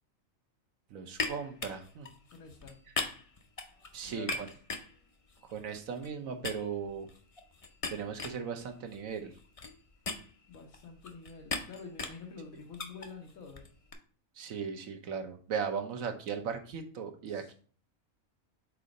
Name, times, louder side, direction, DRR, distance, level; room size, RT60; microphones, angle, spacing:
voice 1, 0.9-2.1 3.9-4.5 5.5-7.1 7.9-9.4 14.3-17.5, right 6 dB, 80° right, 5 dB, 1.2 m, -37 dB
sound 1, 1.1-6.1 6.4-13.9, left 3 dB, 40° left, 0.5 m, -41 dB
voice 2, 2.3-2.8 4.0-4.5 10.5-13.6 17.3-17.5, left 5 dB, 85° left, 2 dB, 1.5 m, -48 dB
4.7 x 3.9 x 5.2 m, 0.41 s
omnidirectional pair, 1.4 m